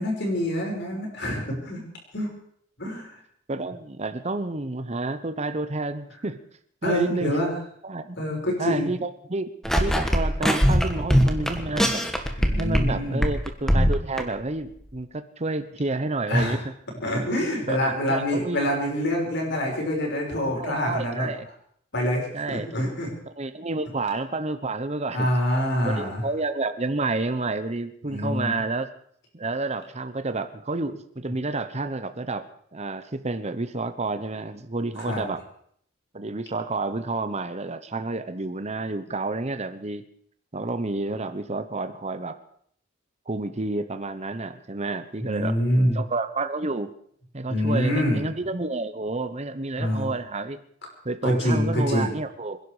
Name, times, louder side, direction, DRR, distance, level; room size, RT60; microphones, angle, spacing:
voice 1, 0.0-1.8 2.1-2.3 2.8-3.1 6.8-7.5 8.2-8.9 12.4-13.2 16.3-16.6 17.0-21.3 21.9-23.1 25.1-26.2 28.1-28.5 35.1-35.2 45.2-46.0 47.5-48.2 49.8-50.1 51.2-52.1, equal, 55° left, 0 dB, 6.1 m, -25 dB
voice 2, 3.5-6.4 6.8-7.3 7.8-8.2 8.6-9.5 9.8-12.0 12.6-16.6 17.7-18.7 20.5-21.5 22.3-22.7 23.4-25.3 26.0-28.9 29.3-35.4 36.1-40.0 40.5-42.4 43.3-46.9 47.3-50.6 51.0-52.6, right 2 dB, 30° right, 10 dB, 1.0 m, -30 dB
sound 1, 9.6-12.9 13.2-14.2, equal, ahead, 1.6 m, -21 dB
26.0 x 11.0 x 5.0 m, 0.64 s
head